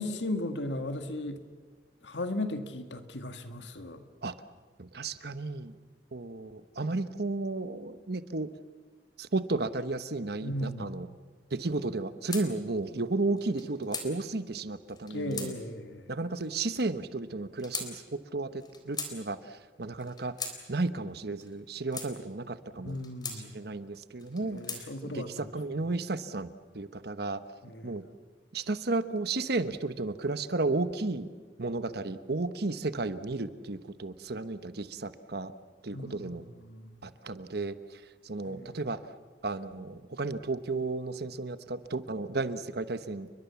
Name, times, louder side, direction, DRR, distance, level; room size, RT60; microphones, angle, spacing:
voice 1, 0.0-1.4 2.0-4.1 10.4-11.0 15.1-16.1 22.8-23.5 24.4-25.5 27.6-28.0 35.9-37.1 38.4-38.8, left 1 dB, 80° left, 8 dB, 1.9 m, -36 dB
voice 2, 4.8-5.8 6.1-8.5 9.2-11.1 11.5-15.5 16.1-20.4 20.7-23.0 23.5-27.4 27.8-28.0 28.5-31.3 31.6-35.5 35.8-36.4 37.0-39.0 39.4-43.3, right 3 dB, 60° right, 12 dB, 1.1 m, -33 dB
sound 1, 12.3-12.5 13.4-14.1 14.9-15.5 16.4-16.9 17.6-17.9 18.6-19.1 20.0-20.6 21.4-22.1 22.9-23.4 24.2-24.8, left 4 dB, 25° left, 3.8 m, -39 dB
30.0 x 22.5 x 7.1 m, 1.5 s
head